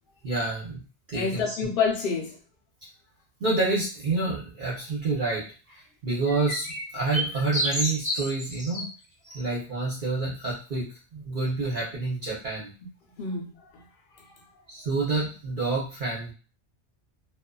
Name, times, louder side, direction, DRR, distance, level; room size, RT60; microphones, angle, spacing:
voice 1, 0.2-0.8 1.1-1.6 3.4-8.9 9.3-12.7 14.7-16.3, right 3 dB, 50° right, -6 dB, 0.9 m, -28 dB
voice 2, 1.1-2.4 13.2-13.9 14.1-14.4, left 5 dB, 60° left, 0 dB, 0.8 m, -29 dB
sound 1, 6.3-8.8 9.2-9.4, equal, 5° right, 0.8 m, -30 dB
2.5 x 2.3 x 2.2 m, 0.35 s
omnidirectional pair, 1.2 m